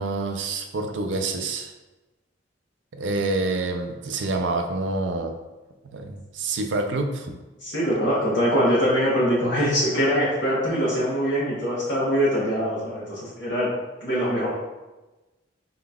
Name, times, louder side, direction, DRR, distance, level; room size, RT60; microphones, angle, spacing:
voice 1, 0.0-1.7 2.9-5.4 5.8-7.3, right 2 dB, 70° right, 4 dB, 0.5 m, -27 dB
voice 2, 7.6-13.7 14.0-14.5, equal, 70° left, -8 dB, 1.0 m, -23 dB
3.9 x 3.8 x 2.3 m, 1.1 s
head